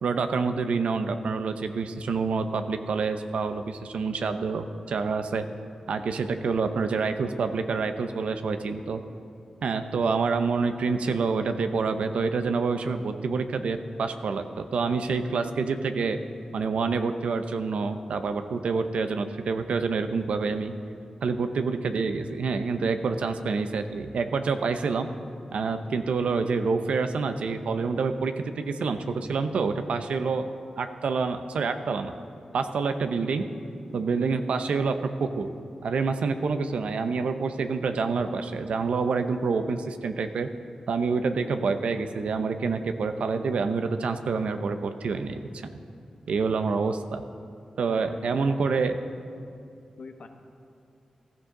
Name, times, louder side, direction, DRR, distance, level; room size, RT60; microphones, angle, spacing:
voice 1, 0.0-5.5 5.9-9.0 9.6-16.2 16.5-20.7 21.2-25.1 25.5-30.4 30.8-32.1 32.5-33.4 33.9-35.5 35.8-40.5 40.9-45.4 46.3-47.2 47.8-48.9, right 4 dB, 85° right, 8 dB, 0.7 m, -27 dB
voice 2, 47.9-49.0 50.0-50.3, left 4 dB, 75° left, 5 dB, 1.1 m, -44 dB
15.0 x 13.5 x 3.8 m, 2.5 s
cardioid pair, 60°, 2 cm